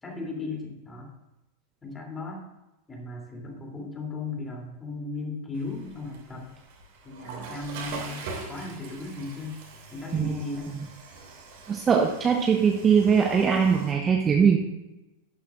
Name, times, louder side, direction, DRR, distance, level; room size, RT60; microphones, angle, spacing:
voice 1, 0.0-1.1 1.8-2.5 2.9-6.5 7.0-9.6 9.9-10.9, left 3 dB, 15° left, 1 dB, 3.1 m, -36 dB
Water / Toilet flush, 5.5-13.9, right 4 dB, 50° right, 2.8 m, -43 dB
voice 2, 11.7-14.6, right 6 dB, 20° right, 2 dB, 1.1 m, -21 dB
12.0 x 11.0 x 2.5 m, 0.99 s
figure-of-eight pair, 90°, 0 cm